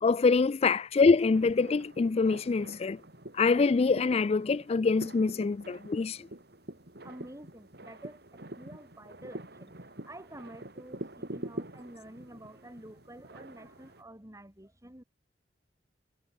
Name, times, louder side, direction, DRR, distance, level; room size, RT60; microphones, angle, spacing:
voice 1, 0.0-3.0 3.3-6.2, left 4 dB, 35° left, 0.4 m, -25 dB
sound 1, 1.3-14.0, right 1 dB, 65° right, 3.9 m, -45 dB
voice 2, 7.0-8.2 8.5-9.7 10.0-15.0, right 1 dB, 20° right, 2.7 m, -49 dB
head